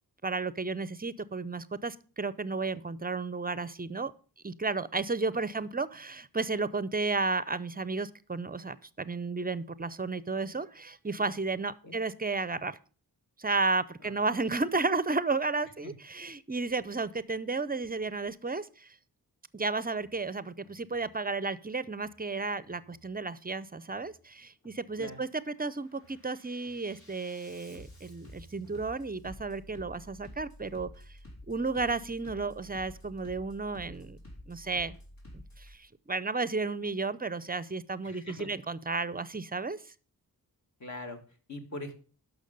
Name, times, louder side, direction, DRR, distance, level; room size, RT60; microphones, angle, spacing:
voice 1, 0.2-4.1 4.4-12.8 13.4-18.9 19.5-30.9 31.5-34.2 34.5-35.0 35.3-39.8, right 3 dB, 25° right, 17 dB, 0.5 m, -33 dB
Bass drum, 20.0-20.2 20.6-21.1 21.9-22.2 22.6-23.1 23.9-24.2 24.6-25.1 25.5-35.8, left 1 dB, 65° left, 4.1 m, -51 dB
voice 2, 38.0-38.5 40.8-41.2 41.5-41.9, left 2 dB, 45° left, 4 dB, 2.1 m, -41 dB
11.5 x 6.2 x 5.3 m, 0.39 s
wide cardioid pair, 95°, 38 cm